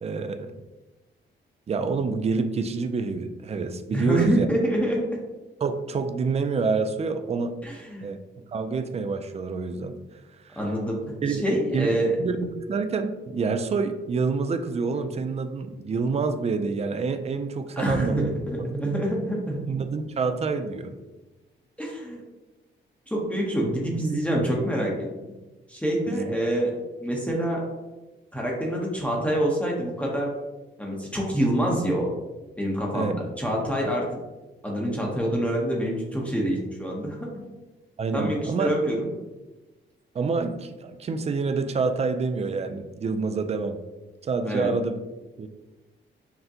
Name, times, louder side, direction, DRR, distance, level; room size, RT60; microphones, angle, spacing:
voice 1, 0.0-0.6 1.7-4.5 5.6-7.6 8.0-10.0 10.4-10.6 11.2-18.3 18.6-19.0 19.7-21.0 26.1-26.4 32.9-33.1 38.0-38.7 40.1-43.8 44.2-45.0 45.4-45.5, right 4 dB, 30° right, 8 dB, 0.4 m, -27 dB
voice 2, 3.9-5.0 7.6-8.1 10.6-11.0 11.3-12.2 17.8-19.6 21.8-22.2 23.1-25.3 25.7-27.7 28.3-30.3 30.8-32.1 32.6-34.2 34.6-37.4 38.1-39.1 44.4-44.7, right 1 dB, 5° left, -3 dB, 0.8 m, -26 dB
5.9 x 2.1 x 2.8 m, 1.1 s
cardioid pair, 95°, 20 cm